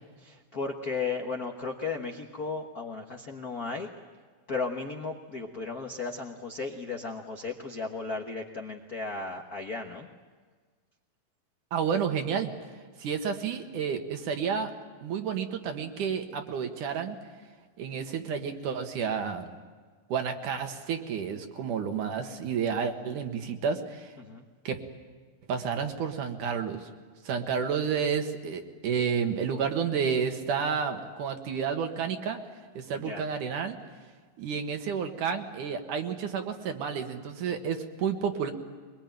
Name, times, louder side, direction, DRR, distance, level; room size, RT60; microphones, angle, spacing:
voice 1, 0.2-3.9 4.5-10.1 24.2-24.4 32.9-33.2, left 4 dB, 60° left, 2 dB, 0.9 m, -35 dB
voice 2, 11.7-12.5 13.0-14.7 15.0-17.2 17.8-19.5 20.1-24.1 24.6-24.8 25.5-26.9 27.2-32.4 32.7-33.8 34.4-38.5, right 6 dB, 70° right, 5 dB, 3.0 m, -30 dB
23.0 x 22.0 x 9.1 m, 1.5 s
omnidirectional pair, 3.9 m